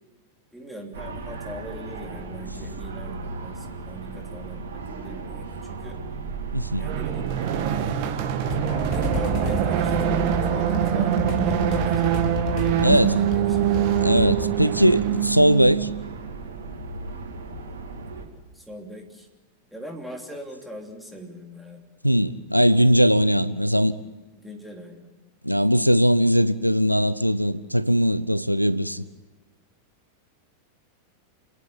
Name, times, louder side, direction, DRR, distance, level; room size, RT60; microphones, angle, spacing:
voice 1, 0.5-6.0 6.8-7.3 8.9-12.2 12.6-13.9 18.5-19.3 19.7-21.8 24.3-25.1, right 1 dB, ahead, 3.2 m, -40 dB
sound 1, 0.9-18.2, right 3 dB, 65° right, 2.6 m, -35 dB
voice 2, 6.5-6.9 12.8-13.2 14.0-15.9 22.0-24.0 25.4-29.0, equal, 90° right, 0.6 m, -20 dB
sound 2, 6.8-16.0, right 10 dB, 45° right, 1.6 m, -24 dB
sound 3, 8.4-14.5, left 3 dB, 45° left, 3.1 m, -31 dB
28.5 x 11.0 x 9.6 m
figure-of-eight pair, 90°, 0 cm